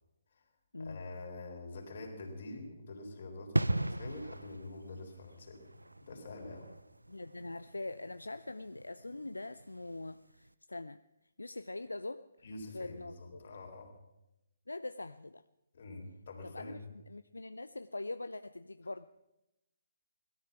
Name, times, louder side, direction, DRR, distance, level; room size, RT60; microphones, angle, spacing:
voice 1, 0.8-5.7 6.0-6.7 12.4-13.9 15.7-16.8, left 2 dB, 50° left, 2 dB, 3.9 m, -46 dB
sound 1, 3.5-10.0 10.3-10.5, right 2 dB, 85° right, 0.5 m, -38 dB
voice 2, 7.1-11.0 11.4-12.3 12.7-13.4 14.7-15.4 16.4-16.8 17.1-19.1, left 2 dB, 80° left, 12 dB, 0.5 m, -43 dB
18.0 x 13.0 x 6.0 m, 0.93 s
figure-of-eight pair, 135°, 0 cm